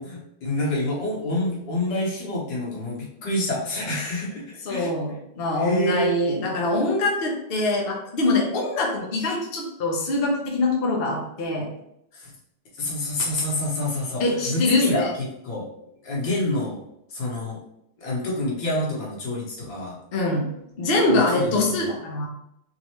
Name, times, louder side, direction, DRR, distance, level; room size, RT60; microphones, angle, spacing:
voice 1, 0.0-4.4 4.7-4.9 5.6-6.1 12.1-12.3 12.8-15.7 16.0-16.8 17.1-17.6 18.0-20.0 21.1-21.8, left 1 dB, 85° left, -4 dB, 1.9 m, -27 dB
voice 2, 4.6-11.7 14.2-15.1 20.1-20.4 20.8-22.3, left 2 dB, 45° left, -1 dB, 0.9 m, -23 dB
4.0 x 3.2 x 3.0 m, 0.80 s
omnidirectional pair, 1.9 m